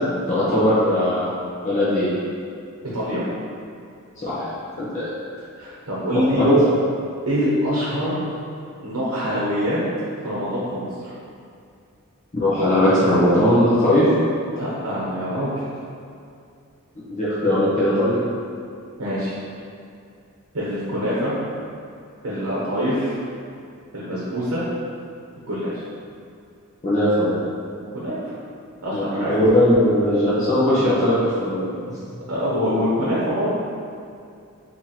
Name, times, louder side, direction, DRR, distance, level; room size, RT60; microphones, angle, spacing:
voice 1, 0.3-1.3 1.6-2.1 4.2-4.5 4.9-5.1 6.4-6.6 12.3-14.0 17.1-18.2 26.8-27.3 28.9-31.7, left 1 dB, 35° left, -12 dB, 0.9 m, -19 dB
voice 2, 5.6-6.4 7.3-8.2 8.8-9.8 10.2-11.1 14.5-15.5 19.0-19.4 20.5-21.3 22.2-23.2 23.9-24.6 25.5-25.7 27.9-28.3 28.8-29.4 32.3-33.5, equal, 70° right, -8 dB, 0.9 m, -25 dB
2.9 x 2.9 x 4.0 m, 2.5 s
head